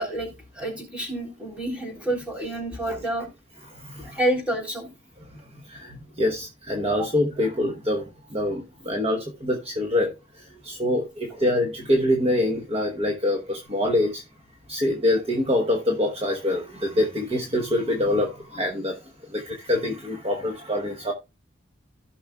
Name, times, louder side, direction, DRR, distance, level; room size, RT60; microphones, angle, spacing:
voice 1, 0.0-3.3 4.0-4.9 7.0-7.1, right 1 dB, 5° right, 3.5 m, -29 dB
voice 2, 3.7-4.2 5.5-14.2 14.7-19.0 19.3-21.1, left 1 dB, 30° right, 1.1 m, -25 dB
15.5 x 6.1 x 2.3 m
head